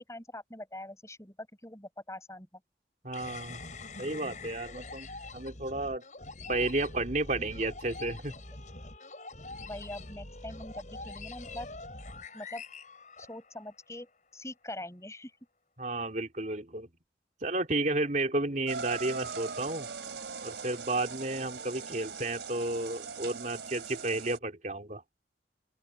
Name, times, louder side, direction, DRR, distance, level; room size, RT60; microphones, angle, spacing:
voice 1, 0.0-2.6 9.7-11.7 12.3-12.6 13.2-15.3, left 1 dB, 15° left, 6.2 m, -43 dB
voice 2, 3.0-3.6 4.0-5.1 5.3-6.0 6.5-8.3 15.8-16.9 17.4-19.9 20.4-25.0, right 2 dB, 45° right, 3.2 m, -32 dB
sound 1, 3.1-13.7, left 2 dB, 45° left, 7.3 m, -44 dB
sound 2, 18.7-24.4, right 5 dB, 85° right, 3.5 m, -40 dB
open air
head